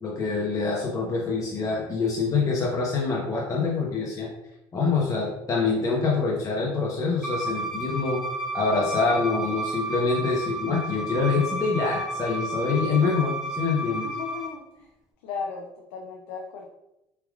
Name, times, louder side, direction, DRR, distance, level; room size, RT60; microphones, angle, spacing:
voice 1, 0.0-4.3 4.7-8.2 8.5-14.1, left 4 dB, 30° left, -4 dB, 1.0 m, -25 dB
Bowed string instrument, 7.2-14.5, right 1 dB, 5° right, 1.4 m, -32 dB
voice 2, 13.9-14.9 15.2-16.7, left 5 dB, 90° left, 0 dB, 0.6 m, -36 dB
4.7 x 3.4 x 2.4 m, 0.89 s
supercardioid pair, 90°, 11 cm